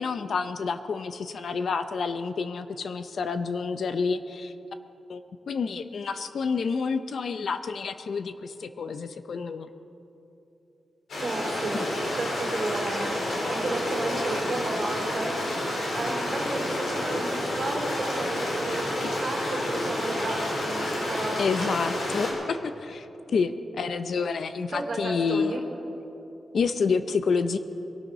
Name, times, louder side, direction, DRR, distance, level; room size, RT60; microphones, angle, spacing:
voice 1, 0.0-4.5 5.1-9.7 11.7-11.9 19.0-19.1 21.4-25.6 26.5-27.6, left 5 dB, 60° left, 10 dB, 0.6 m, -29 dB
Stream, 11.1-22.3, left 1 dB, 75° left, 4.0 m, -29 dB
voice 2, 11.2-11.8 12.1-15.3 15.9-21.5 24.7-25.6, right 2 dB, 40° right, 1 dB, 3.0 m, -33 dB
22.0 x 12.0 x 4.2 m, 2.9 s
wide cardioid pair, 145°, 0 cm